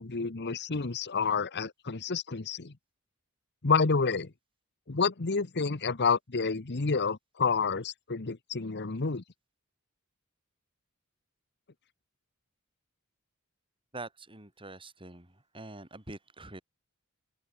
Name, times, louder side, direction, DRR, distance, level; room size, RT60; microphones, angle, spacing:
voice 1, 0.0-2.7 3.6-4.3 4.9-9.2, left 5 dB, 50° left, 1.1 m, -29 dB
voice 2, 13.9-16.6, right 2 dB, 25° right, 5.5 m, -45 dB
open air
head